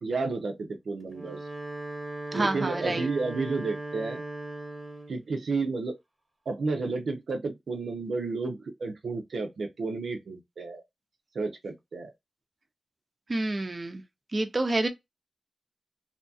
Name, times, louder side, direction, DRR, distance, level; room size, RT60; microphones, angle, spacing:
voice 1, 0.0-1.4 2.3-4.2 5.1-5.9 6.5-10.8 11.3-12.1, right 3 dB, 80° right, 0.5 m, -32 dB
Wind instrument woodwind instrument, 1.0-5.2, right 2 dB, 20° right, 1.1 m, -38 dB
voice 2, 2.3-3.1 13.3-14.0 14.3-14.9, right 2 dB, 40° right, 0.6 m, -28 dB
2.8 x 2.2 x 2.6 m
cardioid pair, 60°, 0 cm